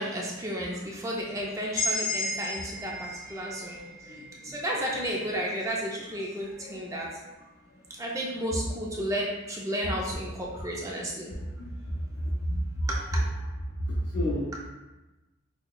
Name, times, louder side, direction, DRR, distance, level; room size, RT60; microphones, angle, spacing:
voice 1, 0.0-7.1 8.0-11.3 12.9-13.2, equal, 15° right, -3 dB, 0.4 m, -33 dB
sound 1, 1.8-5.6, left 1 dB, 25° left, 0.9 m, -34 dB
voice 2, 3.6-4.5 6.4-6.9 11.8-12.2 12.5-12.9 13.8-14.5, equal, 85° left, -6 dB, 0.7 m, -32 dB
5.7 x 2.2 x 2.2 m, 1.1 s
head